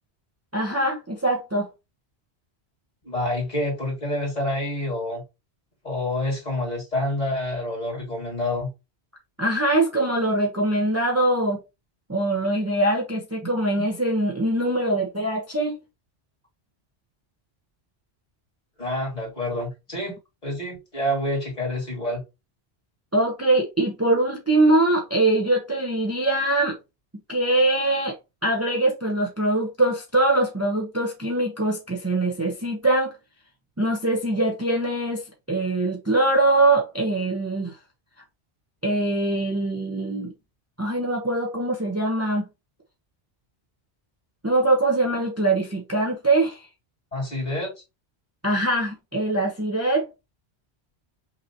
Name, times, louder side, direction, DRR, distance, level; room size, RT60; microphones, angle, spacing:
voice 1, 0.5-1.7 9.4-11.6 12.1-15.8 23.1-26.8 27.3-28.1 28.4-33.2 33.8-37.8 38.8-40.3 40.8-42.4 44.4-46.7 48.4-50.1, right 2 dB, 15° right, 0.7 m, -23 dB
voice 2, 3.0-5.2 5.8-8.7 18.8-20.2 20.4-22.2 47.1-47.7, left 1 dB, 40° left, 2.3 m, -27 dB
5.5 x 2.8 x 2.8 m
omnidirectional pair, 1.1 m